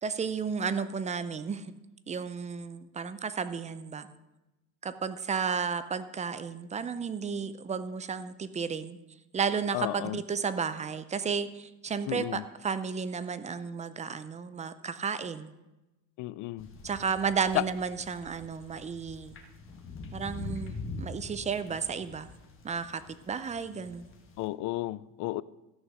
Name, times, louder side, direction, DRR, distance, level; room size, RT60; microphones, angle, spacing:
voice 1, 0.0-1.7 2.1-4.1 4.8-9.0 9.3-15.5 16.8-19.4 20.1-22.3 22.6-24.1, right 6 dB, 20° right, 0.5 m, -33 dB
voice 2, 9.7-10.2 12.1-12.4 16.2-16.7 17.5-17.6 24.4-25.4, left 18 dB, 50° left, 0.4 m, -32 dB
sound 1, 16.6-24.5, left 3 dB, 30° left, 1.5 m, -44 dB
14.0 x 6.4 x 6.3 m
cardioid pair, 145°, 40 cm